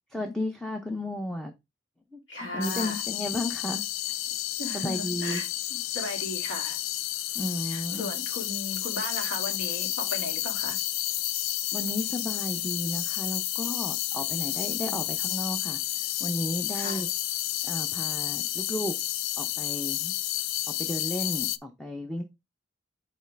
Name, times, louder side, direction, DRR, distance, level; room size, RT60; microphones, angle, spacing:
voice 1, 0.1-1.5 2.1-3.8 4.7-5.4 7.3-8.1 11.7-17.1 17.6-19.0 19.4-20.1 20.8-22.2, left 1 dB, 5° left, 0.6 m, -33 dB
voice 2, 2.3-3.0 4.6-6.8 7.7-10.8 14.8-15.1 16.7-17.0, left 2 dB, 70° left, 2.4 m, -37 dB
sound 1, 2.6-21.6, left 14 dB, 90° left, 0.4 m, -31 dB
5.3 x 4.1 x 4.5 m
head